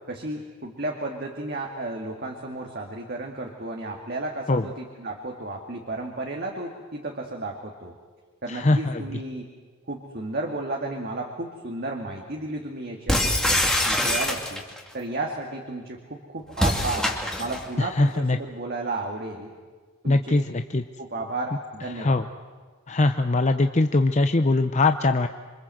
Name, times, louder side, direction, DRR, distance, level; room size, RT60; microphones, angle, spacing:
voice 1, 0.1-7.9 8.4-9.5 9.9-13.2 13.8-14.6 14.9-17.1 17.4-19.5 20.0-20.5 21.0-22.2, right 2 dB, 50° right, 1 dB, 2.3 m, -33 dB
voice 2, 8.5-9.0 18.0-18.4 20.1-20.8 22.0-22.2 22.9-25.3, left 2 dB, 35° left, 8 dB, 0.7 m, -21 dB
sound 1, 13.1-14.8 16.5-17.7, left 1 dB, 5° left, 2.3 m, -24 dB
27.5 x 24.5 x 7.8 m, 1.4 s
head